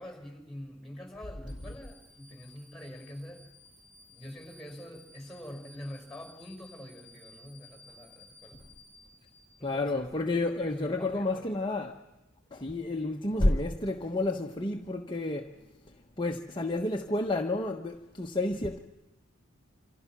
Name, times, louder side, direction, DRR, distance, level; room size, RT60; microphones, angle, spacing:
voice 1, 0.0-3.5 4.1-8.6 9.6-10.1 10.6-11.6, left 1 dB, ahead, 5.8 m, -45 dB
sound 1, 1.5-9.9, left 2 dB, 25° right, 5.3 m, -57 dB
voice 2, 9.6-12.0 12.5-15.6 15.9-18.8, left 2 dB, 25° left, 1.2 m, -30 dB
28.0 x 27.0 x 6.1 m
head